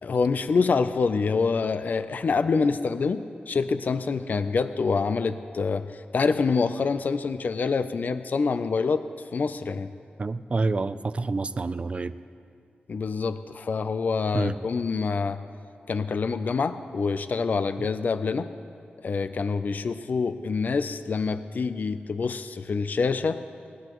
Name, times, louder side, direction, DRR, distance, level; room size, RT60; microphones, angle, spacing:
voice 1, 0.0-9.1 9.3-9.9 12.9-15.4 15.9-18.5 19.0-23.4, left 4 dB, 55° left, 11 dB, 0.5 m, -26 dB
voice 2, 10.2-12.1 14.3-14.6 17.8-17.9, right 3 dB, 35° right, 13 dB, 0.4 m, -28 dB
20.0 x 18.5 x 3.1 m, 2.4 s
wide cardioid pair, 120°, 4 cm